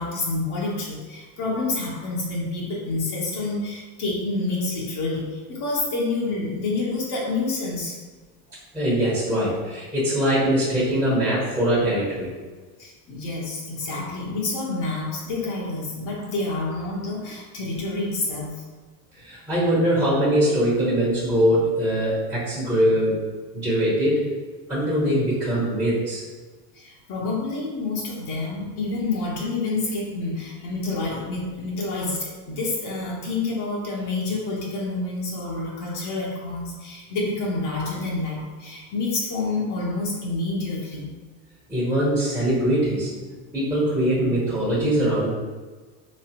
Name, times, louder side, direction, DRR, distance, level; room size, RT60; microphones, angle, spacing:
voice 1, 0.0-8.0 12.8-18.6 26.7-41.1, left 3 dB, 55° left, -5 dB, 1.1 m, -28 dB
voice 2, 8.7-12.3 19.2-23.2 23.5-24.2 24.7-26.2 41.7-43.3 43.5-45.3, equal, 5° right, -10 dB, 1.2 m, -22 dB
3.2 x 3.2 x 2.9 m, 1.3 s
supercardioid pair, 95°, 49 cm